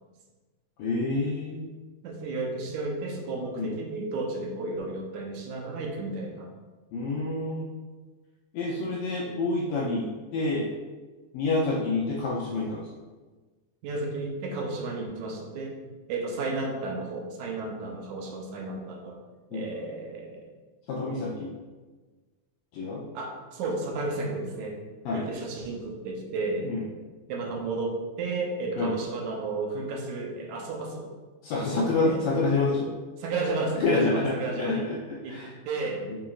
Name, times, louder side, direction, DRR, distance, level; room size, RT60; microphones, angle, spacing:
voice 1, 0.8-1.7 3.6-3.7 6.9-7.7 8.5-10.7 11.3-12.9 19.5-19.7 20.9-21.5 22.7-23.0 25.1-25.3 26.7-26.8 28.8-28.9 31.4-32.8 33.8-35.5 36.1-36.2, left 3 dB, 75° left, -4 dB, 1.8 m, -28 dB
voice 2, 2.0-6.5 13.8-15.8 16.1-19.2 19.5-20.5 21.0-21.2 23.1-24.8 25.1-26.7 27.3-31.1 31.5-32.5 33.2-34.9 35.2-35.4 35.7-36.0, right 3 dB, 75° right, 1 dB, 2.2 m, -33 dB
7.0 x 5.8 x 2.5 m, 1.3 s
omnidirectional pair, 3.5 m